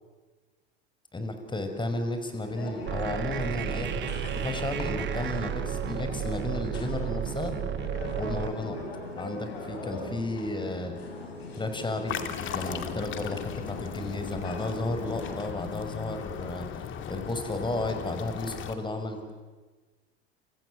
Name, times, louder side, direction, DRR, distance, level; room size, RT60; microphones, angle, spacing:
voice 1, 1.1-7.5 8.2-8.8 9.2-11.0 11.5-12.1 12.5-16.7 17.1-19.3, left 2 dB, 15° left, 7 dB, 5.5 m, -33 dB
sound 1, 2.4-15.4, left 2 dB, 75° left, 6.2 m, -40 dB
sound 2, 2.9-8.5, right 10 dB, 35° right, 1.7 m, -33 dB
sound 3, 12.1-18.7, left 8 dB, 40° left, 2.4 m, -37 dB
29.0 x 25.5 x 7.7 m, 1.3 s
hypercardioid pair, 80°, 30 cm